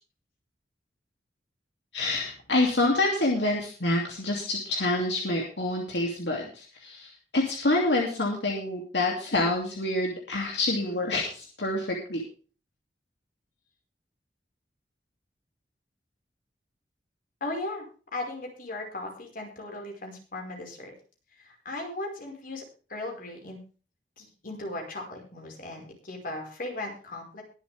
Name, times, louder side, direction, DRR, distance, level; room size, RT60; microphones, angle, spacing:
voice 1, 1.9-12.2, left 2 dB, 75° left, 0 dB, 2.7 m, -27 dB
voice 2, 17.4-17.8 18.1-20.9 21.4-22.6 22.9-23.6 24.2-27.4, left 2 dB, 55° left, 1 dB, 5.1 m, -37 dB
22.0 x 7.7 x 3.5 m, 0.38 s
head